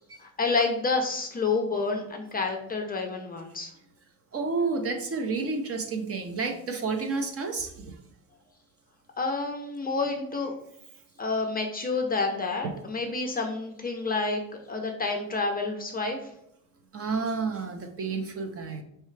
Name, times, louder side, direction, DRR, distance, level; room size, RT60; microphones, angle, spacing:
voice 1, 0.2-3.7 9.2-10.5 11.2-14.4 14.7-16.3, left 3 dB, 25° left, 3 dB, 0.5 m, -29 dB
voice 2, 4.3-8.0 16.9-18.8, right 4 dB, 35° right, 5 dB, 0.6 m, -30 dB
4.6 x 3.3 x 3.2 m, 0.76 s
cardioid pair, 140°, 41 cm